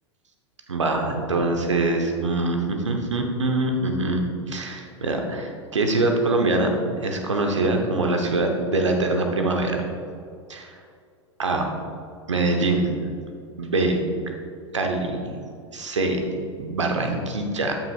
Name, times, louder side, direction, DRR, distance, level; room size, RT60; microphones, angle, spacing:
voice 1, 0.7-6.7 7.0-9.8 10.5-10.7 11.4-11.7 12.3-12.9 13.6-14.0 14.7-15.2 15.7-16.2 16.6-17.7, right 2 dB, 90° right, 3 dB, 1.0 m, -24 dB
11.5 x 5.9 x 2.4 m, 2.3 s
hypercardioid pair, 95°, 15 cm